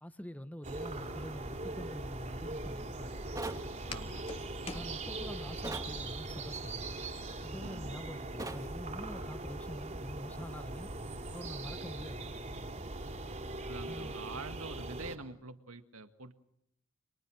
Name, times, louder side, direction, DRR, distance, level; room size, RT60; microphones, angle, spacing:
voice 1, 0.0-3.2 4.7-6.8 7.4-10.9 11.3-12.3 13.8-14.1, equal, 5° left, 1.2 m, -45 dB
sound 1, 0.6-15.2, right 2 dB, 35° right, 3.4 m, -41 dB
Walk footsteps, 1.0-5.6, left 3 dB, 25° left, 2.0 m, -50 dB
sound 2, 3.4-3.7 5.6-5.9 8.4-8.7, right 2 dB, 15° right, 2.1 m, -39 dB
voice 2, 3.9-4.3 7.6-8.0 13.7-16.3, right 3 dB, 80° right, 1.9 m, -46 dB
29.5 x 27.0 x 6.4 m
head